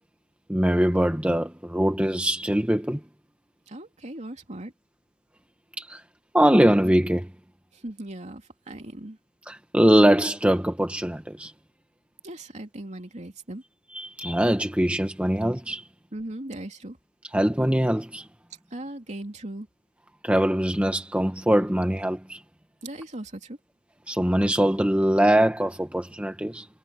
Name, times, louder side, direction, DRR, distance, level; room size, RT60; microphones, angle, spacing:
voice 1, 0.5-3.0 5.8-6.0 6.3-7.3 9.5-11.5 13.9-15.8 17.3-18.3 20.2-22.4 24.1-26.7, right 1 dB, 5° right, 1.0 m, -22 dB
voice 2, 3.7-4.7 7.7-9.2 12.2-13.6 16.1-17.0 18.7-19.7 22.8-23.6, right 1 dB, 40° right, 3.0 m, -38 dB
head